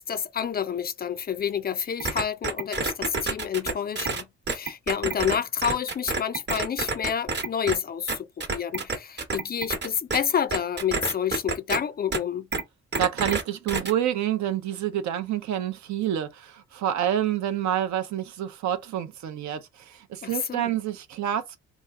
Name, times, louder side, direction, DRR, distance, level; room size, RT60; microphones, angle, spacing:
voice 1, 0.0-12.5 20.2-20.6, left 8 dB, 30° left, 0.4 m, -29 dB
sound 1, 2.0-5.4 5.6-7.8 8.1-10.2 10.5-11.8 12.1-12.2 12.5-12.6 12.9-13.4 13.7-13.9, right 4 dB, 35° right, 0.9 m, -28 dB
voice 2, 13.0-21.6, right 11 dB, 70° right, 0.6 m, -28 dB
3.0 x 2.4 x 3.4 m
cardioid pair, 90°, 30 cm